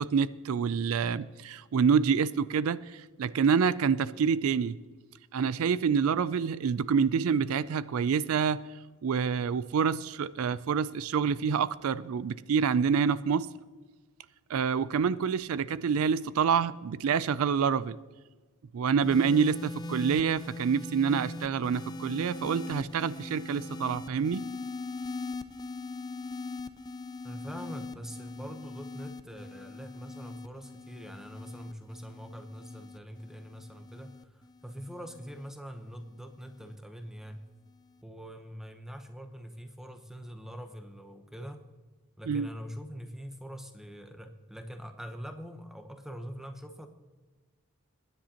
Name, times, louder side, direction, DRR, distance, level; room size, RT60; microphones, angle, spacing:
voice 1, 0.0-4.8 5.3-8.6 9.0-13.5 14.5-18.0 18.7-24.4 42.3-42.5, right 6 dB, 75° right, 0.4 m, -27 dB
sound 1, 19.0-35.5 36.4-36.8, left 3 dB, 20° left, 0.4 m, -41 dB
voice 2, 27.2-37.4 38.0-41.6 42.2-46.9, equal, ahead, 0.8 m, -43 dB
20.5 x 10.0 x 2.9 m
head